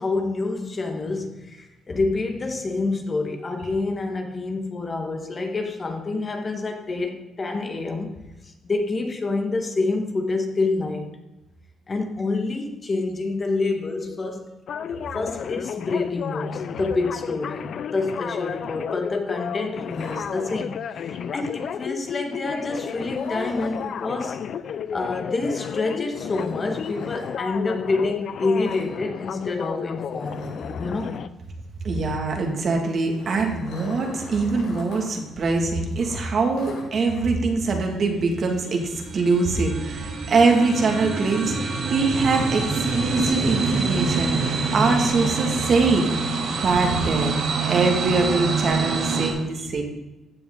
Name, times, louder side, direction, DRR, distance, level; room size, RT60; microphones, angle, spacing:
voice 1, 0.0-11.2 11.9-14.5 14.9-24.5 24.9-31.2 31.9-32.0, left 3 dB, 35° left, 1.5 m, -27 dB
sound 1, 14.7-31.3, left 8 dB, 60° left, 0.5 m, -32 dB
sound 2, 19.9-20.9 22.9-23.9 26.1-27.3 28.5-28.9 29.2-29.4 29.7-29.8 30.1-31.3 32.8-35.1 35.4-35.5 36.0-37.2, left 2 dB, 85° left, 4.3 m, -41 dB
voice 2, 31.8-46.1 46.6-49.8, right 3 dB, 50° right, 2.2 m, -23 dB
sound 3, 37.8-49.3, right 4 dB, 75° right, 2.1 m, -26 dB
14.5 x 7.1 x 3.9 m
cardioid pair, 90°, 0 cm